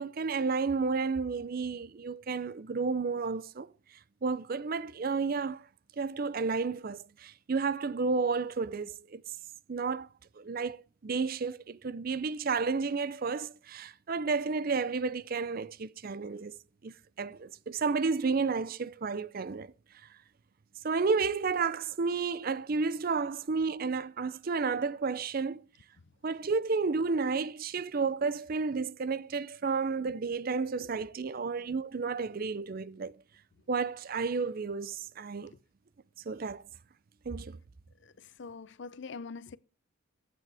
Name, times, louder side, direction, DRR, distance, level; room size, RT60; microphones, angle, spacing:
voice 1, 0.0-3.7 4.2-5.7 6.0-9.2 9.7-10.1 10.4-16.6 16.8-19.7 20.8-25.6 26.2-33.2 33.7-35.5 36.3-36.6 37.3-37.6, right 4 dB, 45° right, 0.5 m, -31 dB
voice 2, 38.0-39.6, left 4 dB, 55° left, 0.5 m, -44 dB
14.0 x 9.1 x 3.4 m
head